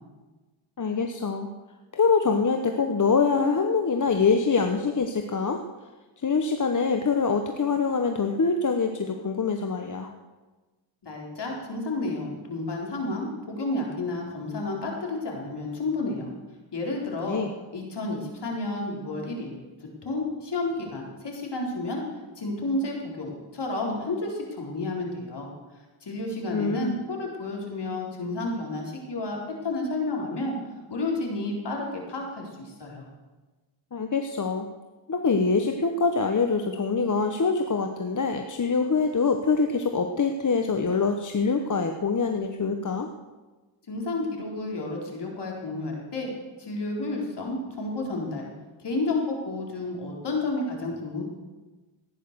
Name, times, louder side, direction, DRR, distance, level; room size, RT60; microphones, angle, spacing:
voice 1, 0.8-1.5 1.9-5.6 6.2-10.1 17.3-17.5 26.5-27.0 33.9-34.7 35.1-43.1, left 4 dB, 40° left, 5 dB, 1.1 m, -24 dB
voice 2, 11.0-16.3 16.7-17.4 17.7-19.6 20.0-22.0 22.4-25.5 26.0-29.4 29.6-30.5 30.9-33.1 43.9-46.3 46.6-48.5 48.8-51.2, left 2 dB, 60° left, -1 dB, 4.3 m, -31 dB
15.0 x 10.0 x 6.9 m, 1.2 s
cardioid pair, 80°, 47 cm